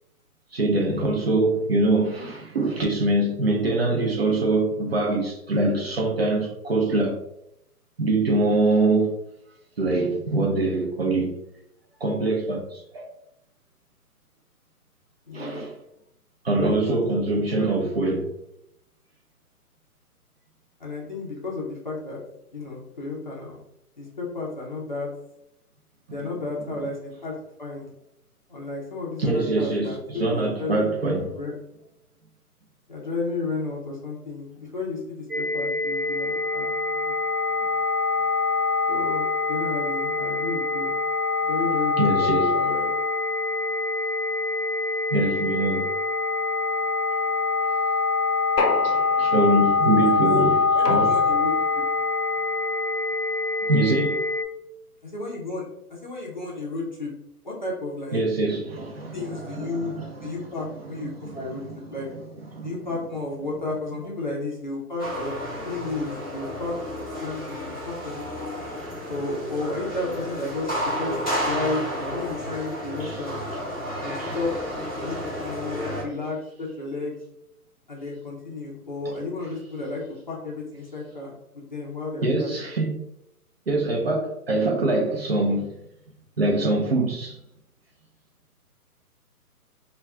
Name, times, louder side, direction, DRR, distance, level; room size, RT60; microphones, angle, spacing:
voice 1, 0.5-7.2 8.0-9.2 9.8-11.3 12.0-13.1 15.3-15.7 16.4-18.3 29.2-31.3 42.0-42.6 45.1-45.9 48.8-51.1 53.6-54.2 58.1-60.3 61.0-61.8 62.5-62.7 73.0-73.2 74.2-74.4 75.0-75.1 82.2-83.0 83.7-85.7 86.4-87.4, right 2 dB, 45° right, 0.5 m, -24 dB
voice 2, 15.3-15.6 16.5-17.0 17.5-17.7 20.8-22.2 22.5-23.6 24.0-25.1 26.1-27.9 28.5-31.5 32.9-37.1 38.9-40.9 41.4-42.9 49.9-50.4 50.7-51.8 55.0-57.1 57.4-58.2 59.1-59.9 60.2-61.6 61.9-62.1 62.6-66.8 67.2-68.5 69.1-73.4 74.0-74.5 75.0-77.2 77.9-82.7, left 3 dB, 30° left, 0.5 m, -33 dB
sound 1, 35.3-54.4, left 4 dB, 80° right, 1.0 m, -24 dB
sound 2, 48.6-49.6 50.9-51.7, left 3 dB, 85° left, 0.6 m, -29 dB
sound 3, 65.0-76.0, equal, ahead, 0.7 m, -32 dB
2.2 x 2.2 x 3.4 m
figure-of-eight pair, 145°, 46 cm